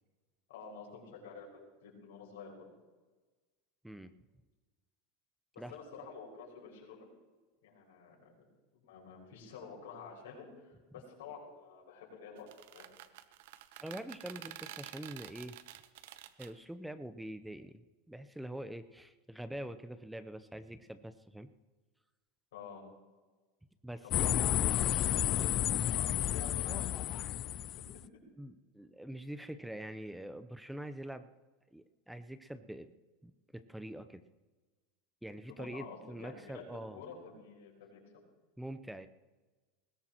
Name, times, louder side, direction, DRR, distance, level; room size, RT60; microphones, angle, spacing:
voice 1, 0.5-2.7 5.5-7.1 7.6-8.2 8.8-12.5 12.7-12.9 22.5-22.9 24.0-24.8 25.1-27.5 35.5-38.0, left 5 dB, 80° left, -2 dB, 6.1 m, -49 dB
sound 1, 12.4-16.5, right 13 dB, 75° right, 1.0 m, -49 dB
voice 2, 13.8-15.6 16.4-21.5 23.8-24.4 28.4-31.3 31.7-32.9 33.2-34.2 35.2-37.0 38.6-39.1, right 1 dB, 5° right, 11 dB, 0.8 m, -45 dB
sound 2, 24.1-28.0, left 13 dB, 45° left, 0.4 m, -31 dB
20.5 x 17.0 x 3.1 m, 1.3 s
hypercardioid pair, 95°, 0 cm